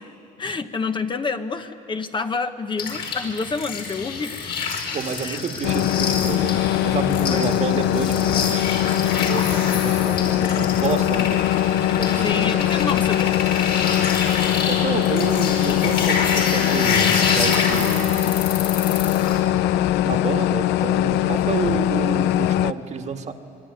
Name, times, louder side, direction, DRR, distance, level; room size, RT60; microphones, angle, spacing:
voice 1, 0.0-4.4 5.2-5.4 7.3-7.7 8.2-8.5 12.2-13.4, left 4 dB, 30° left, 7 dB, 1.1 m, -28 dB
sound 1, 2.8-19.4, left 5 dB, 70° left, 4.9 m, -27 dB
voice 2, 4.9-8.6 9.1-11.5 12.0-12.6 14.7-18.2 20.0-23.3, right 6 dB, 45° right, 5 dB, 1.7 m, -29 dB
sound 2, 5.6-22.7, left 13 dB, 90° left, 0.6 m, -21 dB
26.0 x 23.0 x 9.7 m, 2.8 s
cardioid pair, 110°, 17 cm